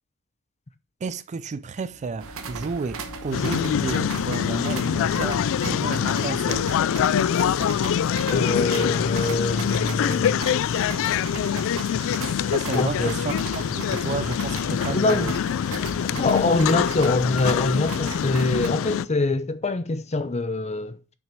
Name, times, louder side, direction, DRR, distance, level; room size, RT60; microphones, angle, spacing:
voice 1, 1.0-6.7 12.5-15.4 15.8-16.1, right 4 dB, 30° right, 0.3 m, -32 dB
sound 1, 1.7-7.4, left 2 dB, 80° left, 1.9 m, -47 dB
sound 2, 2.2-18.7, right 4 dB, 70° right, 1.0 m, -38 dB
sound 3, 3.3-19.1, left 8 dB, 65° left, 0.3 m, -24 dB
voice 2, 8.3-10.4 12.7-13.1 14.9-15.3 16.0-21.0, left 2 dB, 30° left, 0.7 m, -24 dB
6.3 x 6.0 x 6.8 m
head